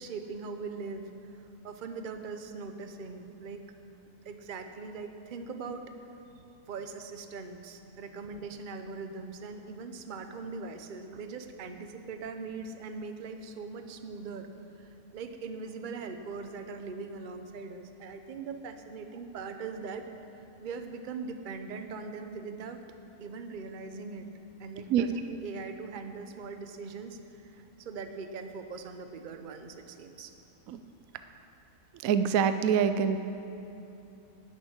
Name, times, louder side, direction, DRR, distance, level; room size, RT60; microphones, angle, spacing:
voice 1, 0.0-3.6 4.1-5.8 6.7-14.5 14.8-20.0 20.6-22.8 23.2-24.3 24.6-30.3, right 4 dB, 40° right, 7 dB, 0.8 m, -41 dB
voice 2, 31.9-33.2, right 7 dB, 65° right, 10 dB, 0.9 m, -25 dB
13.0 x 7.1 x 9.5 m, 2.9 s
omnidirectional pair, 1.7 m